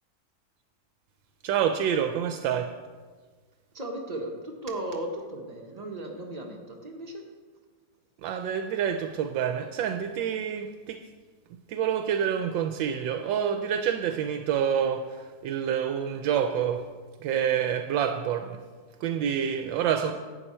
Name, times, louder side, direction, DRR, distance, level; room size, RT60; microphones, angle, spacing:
voice 1, 1.4-2.7 8.2-11.0 11.5-16.9 17.2-18.6 19.0-20.1, right 8 dB, 80° right, 7 dB, 1.3 m, -27 dB
voice 2, 3.7-7.3 19.9-20.1, right 1 dB, 25° right, 1 dB, 1.1 m, -36 dB
11.0 x 9.0 x 4.3 m, 1.4 s
omnidirectional pair, 2.1 m